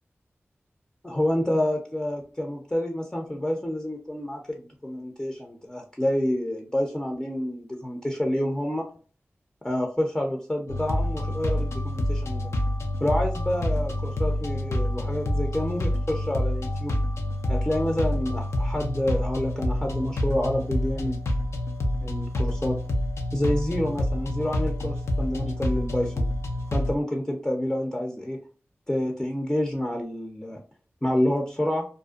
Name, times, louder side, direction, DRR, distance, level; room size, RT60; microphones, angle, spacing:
voice 1, 1.0-8.9 9.6-12.5 13.0-17.0 17.5-21.2 22.0-22.8 23.3-26.3 26.7-28.4 28.9-30.6 31.0-31.8, left 1 dB, 15° left, 1 dB, 0.5 m, -28 dB
sound 1, 10.7-27.0, left 1 dB, 85° left, 0.4 m, -27 dB
2.5 x 2.1 x 2.3 m, 0.39 s
cardioid pair, 50°, 5 cm